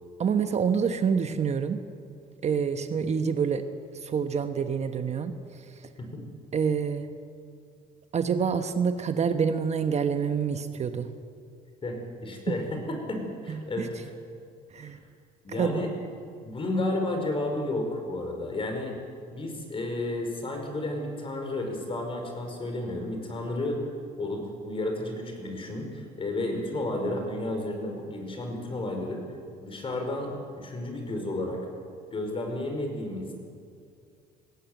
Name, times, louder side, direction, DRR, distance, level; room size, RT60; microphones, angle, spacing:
voice 1, 0.2-1.8 2.4-3.6 4.0-5.3 5.6-5.7 6.5-7.1 8.1-11.1 12.5-12.6 13.5-13.9 14.7-15.0 15.5-15.9, right 6 dB, 40° right, 8 dB, 1.1 m, -27 dB
voice 2, 11.8-13.9 14.8-15.0 15.4-15.9 16.4-19.0 19.3-23.8 24.2-29.2 29.6-30.3 30.6-31.6 32.1-33.3, left 2 dB, 30° left, 3 dB, 5.1 m, -32 dB
19.5 x 16.5 x 9.1 m, 2.3 s
cardioid pair, 110°, 17 cm